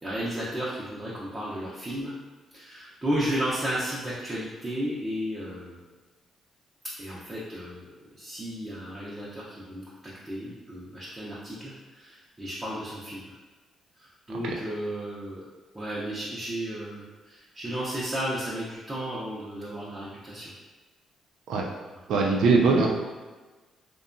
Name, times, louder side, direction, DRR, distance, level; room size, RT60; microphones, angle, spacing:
voice 1, 0.0-2.1 2.5-5.8 7.0-7.9 8.2-13.2 14.0-15.5 15.7-20.5, equal, 20° right, -8 dB, 0.6 m, -33 dB
voice 2, 22.1-22.9, right 4 dB, 75° right, -1 dB, 0.5 m, -21 dB
2.7 x 2.2 x 2.5 m, 1.2 s
cardioid pair, 90°, 0 cm